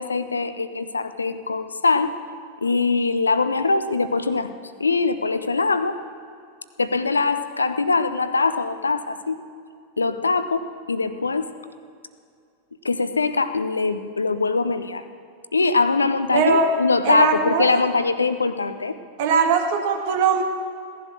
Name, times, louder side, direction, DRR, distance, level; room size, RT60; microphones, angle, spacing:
voice 1, 0.0-2.1 2.6-4.5 4.8-6.0 6.8-9.4 10.0-11.5 12.8-15.0 15.5-18.9, left 4 dB, 75° left, 12 dB, 0.6 m, -22 dB
voice 2, 16.3-16.7 17.0-17.7 19.2-20.4, right 5 dB, 50° right, 4 dB, 1.8 m, -20 dB
17.0 x 11.0 x 6.4 m, 2.4 s
figure-of-eight pair, 90°, 0 cm